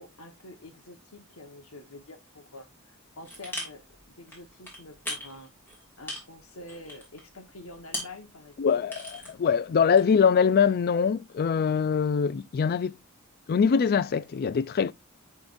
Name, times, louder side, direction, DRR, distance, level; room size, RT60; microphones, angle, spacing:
voice 1, 0.0-5.5 6.0-8.8, left 2 dB, 75° left, 1.4 m, -47 dB
sound 1, 3.2-4.0 4.3-7.3 7.5-8.3 8.6-9.5 10.0-10.2, left 1 dB, 10° left, 2.7 m, -37 dB
voice 2, 8.6-12.9 13.5-14.9, left 6 dB, 45° left, 0.3 m, -23 dB
10.5 x 3.7 x 2.6 m
head